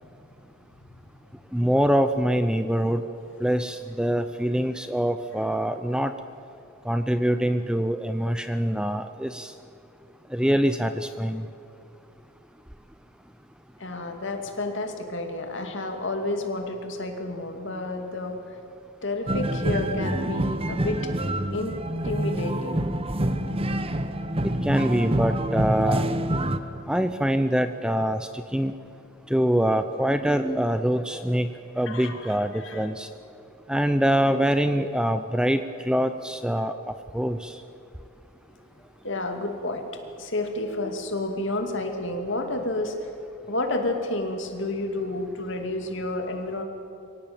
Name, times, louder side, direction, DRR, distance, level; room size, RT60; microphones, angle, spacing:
voice 1, 1.5-3.1 3.4-6.1 6.8-9.5 10.3-11.5 24.4-26.1 26.9-28.7 29.3-31.5 31.8-33.1 33.7-36.7 37.1-37.6, equal, 5° right, 9 dB, 0.5 m, -24 dB
voice 2, 13.8-18.4 19.0-21.1 21.5-21.7 22.0-22.9 31.9-32.8 39.0-39.9 40.2-42.9 43.5-46.6, left 2 dB, 55° left, 4 dB, 2.6 m, -30 dB
sound 1, 19.3-26.6, right 1 dB, 25° right, 0.9 m, -26 dB
24.5 x 17.5 x 8.9 m, 2.6 s
head